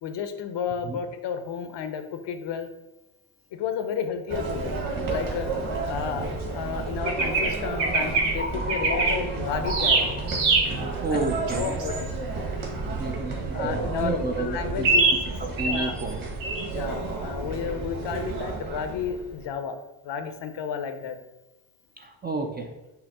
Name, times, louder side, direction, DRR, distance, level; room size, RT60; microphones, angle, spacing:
voice 1, 0.0-2.7 3.6-4.7 5.1-5.5 5.9-10.1 11.1-11.2 11.5-12.1 13.5-15.0 15.6-16.0 16.7-19.8 20.0-21.2, left 7 dB, 60° left, 8 dB, 0.7 m, -32 dB
sound 1, 4.3-19.5, right 3 dB, 40° right, 1.5 m, -32 dB
sound 2, 7.1-7.5 7.8-8.3 8.7-9.1 9.7-10.7 11.2-12.0 14.8-15.2 15.6-15.9 16.4-16.6, right 3 dB, 65° right, 1.3 m, -23 dB
voice 2, 8.4-9.2 9.6-10.3 11.0-11.8 13.0-15.0 15.6-16.2 22.0-22.7, right 3 dB, 20° right, 3 dB, 0.4 m, -31 dB
5.7 x 2.1 x 4.1 m, 1.0 s
supercardioid pair, 80°, 50 cm